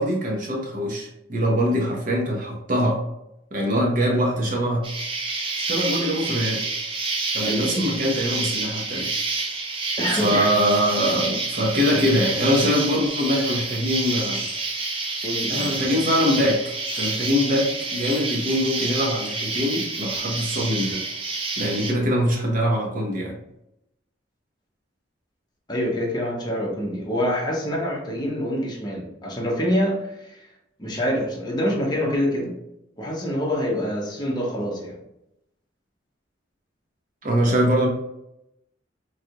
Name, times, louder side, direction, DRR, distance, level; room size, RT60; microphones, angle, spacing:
voice 1, 0.0-3.0 3.5-4.9 5.6-6.6 7.3-9.1 10.1-14.5 15.5-21.0 21.6-23.4 37.2-37.9, equal, 45° right, -1 dB, 0.8 m, -23 dB
Insect, 4.8-21.9, right 3 dB, 30° right, 0.4 m, -28 dB
voice 2, 7.4-7.9 10.0-10.5 15.2-15.7 25.7-30.4 30.8-32.6 33.0-35.0, equal, 25° left, -2 dB, 0.7 m, -26 dB
sound 1, 10.7-10.8 11.6-12.0 13.0-13.6 14.3-14.7 15.5-16.0 16.9-17.2 18.0-18.6 19.1-19.5, left 4 dB, 55° left, 0.7 m, -43 dB
3.2 x 2.5 x 2.8 m, 0.84 s
head